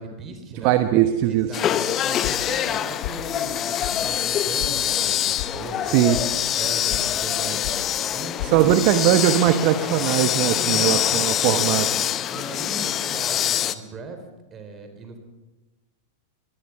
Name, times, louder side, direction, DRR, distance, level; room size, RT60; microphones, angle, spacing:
voice 1, 0.0-0.8 1.3-6.2 6.6-7.8 8.1-9.1 10.5-11.8 12.3-14.2 14.5-15.2, right 3 dB, 25° right, 7 dB, 4.0 m, -38 dB
voice 2, 0.6-1.6 5.9-6.2 8.4-11.9, right 12 dB, 45° right, 9 dB, 1.1 m, -20 dB
sound 1, 1.5-13.7, left 10 dB, 30° left, 0.9 m, -25 dB
sound 2, 2.2-2.8 3.0-3.5 3.8-3.9 4.3-4.7 5.0-5.5 5.8-6.3 6.6-7.0 7.3-7.8 8.1-8.6, left 15 dB, 45° left, 1.5 m, -34 dB
23.0 x 19.0 x 6.0 m, 1.1 s
figure-of-eight pair, 90°, 0 cm